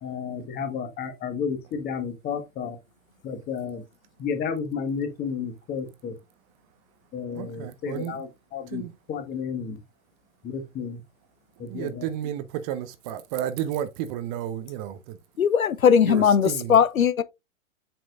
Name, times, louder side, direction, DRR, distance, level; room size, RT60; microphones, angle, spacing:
voice 1, 0.0-2.7 3.2-3.8 4.2-6.1 7.1-9.8 10.4-11.0 11.6-12.1, left 6 dB, 25° left, 1.7 m, -32 dB
voice 2, 7.3-8.2 8.7-8.9 11.7-15.2 16.1-16.8, right 11 dB, 30° right, 0.7 m, -32 dB
voice 3, 15.4-17.2, left 7 dB, 80° left, 0.7 m, -19 dB
7.8 x 6.1 x 2.5 m
figure-of-eight pair, 110°, 41 cm